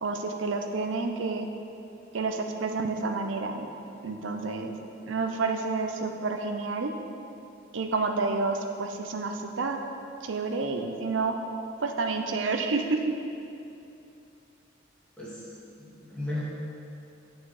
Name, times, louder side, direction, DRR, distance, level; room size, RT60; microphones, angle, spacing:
voice 1, 0.0-1.5 2.1-3.7 4.0-4.8 5.1-6.9 7.7-9.8 10.2-11.4 11.8-13.1, right 3 dB, 70° right, 4 dB, 0.6 m, -29 dB
voice 2, 15.2-16.4, left 2 dB, 5° left, -9 dB, 2.2 m, -36 dB
9.1 x 6.1 x 4.8 m, 2.7 s
head